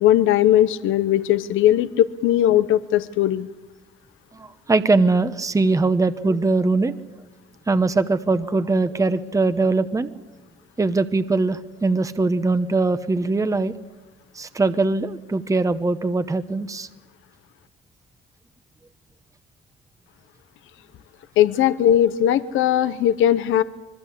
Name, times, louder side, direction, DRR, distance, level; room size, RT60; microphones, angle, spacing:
voice 1, 0.0-3.5 21.4-23.6, left 11 dB, 85° left, 14 dB, 0.8 m, -18 dB
voice 2, 4.4-6.9 7.7-10.1 10.8-13.7 14.3-16.9, right 3 dB, 15° right, 11 dB, 0.9 m, -21 dB
26.0 x 21.0 x 8.4 m, 1.1 s
cardioid pair, 90°, 20 cm